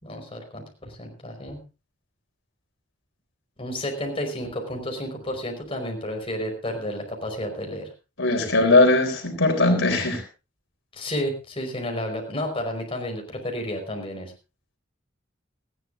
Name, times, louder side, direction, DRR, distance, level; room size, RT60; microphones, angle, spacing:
voice 1, 0.0-1.6 3.6-7.9 10.9-14.3, left 1 dB, 30° left, 2 dB, 5.2 m, -31 dB
voice 2, 8.2-10.2, left 2 dB, 75° left, 4 dB, 4.0 m, -19 dB
20.0 x 15.5 x 2.7 m, 0.30 s
head